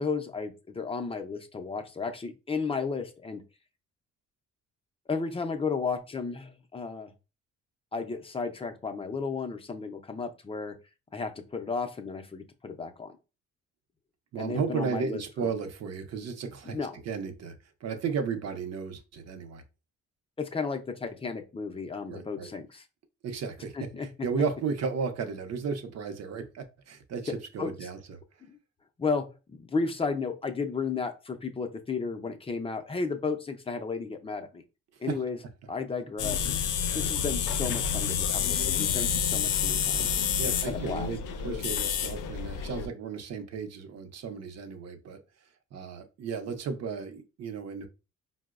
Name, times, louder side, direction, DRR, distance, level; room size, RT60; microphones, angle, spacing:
voice 1, 0.0-3.4 5.1-7.1 7.9-10.8 11.1-13.2 14.4-15.5 16.7-16.9 20.4-22.8 23.7-24.3 27.3-27.9 28.5-28.6 29.0-34.6 35.0-35.4 35.7-36.5 36.9-38.4 38.8-40.1 40.7-41.1, left 4 dB, 20° left, 6 dB, 0.4 m, -33 dB
voice 2, 14.3-19.6 22.1-22.5 23.2-23.9 24.2-28.2 35.1-35.2 36.8-37.0 40.4-45.2 45.7-47.9, right 5 dB, 60° right, 7 dB, 0.6 m, -34 dB
sound 1, 36.2-42.9, left 7 dB, 85° left, 0.5 m, -29 dB
4.3 x 2.0 x 2.3 m, 0.30 s
cardioid pair, 90°, 30 cm